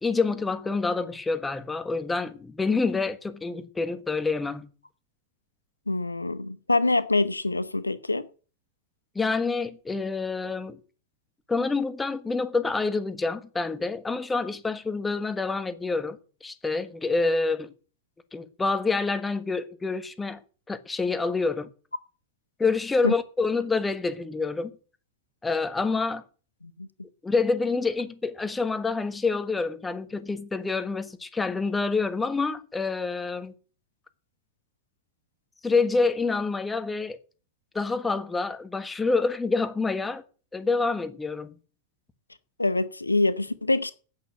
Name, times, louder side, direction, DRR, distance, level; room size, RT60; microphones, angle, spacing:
voice 1, 0.0-4.7 9.1-10.8 11.5-17.7 18.3-20.4 20.7-21.7 22.6-24.7 25.4-26.2 27.2-33.5 35.6-37.2 37.7-40.2 40.5-41.5, left 4 dB, 10° left, 1.4 m, -27 dB
voice 2, 5.9-8.3 23.0-23.1 26.6-26.9 42.6-43.9, left 2 dB, 80° left, 0.9 m, -25 dB
8.9 x 8.4 x 9.3 m
figure-of-eight pair, 90°, 0 cm